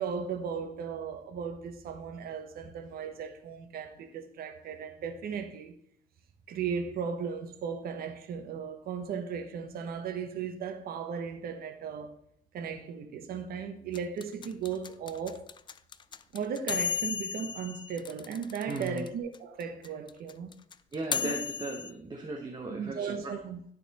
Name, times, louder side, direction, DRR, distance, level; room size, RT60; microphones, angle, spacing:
voice 1, 0.0-5.8 6.5-12.2 12.5-15.5 16.3-20.5 21.2-21.4 22.7-23.6, right 6 dB, 65° right, 1.2 m, -36 dB
sound 1, 13.9-19.1 19.3-19.4 19.6-21.9, left 7 dB, 30° left, 0.4 m, -34 dB
voice 2, 18.7-19.0 20.9-23.3, right 2 dB, 25° right, 1.1 m, -37 dB
12.5 x 4.2 x 4.2 m
cardioid pair, 110°, 17 cm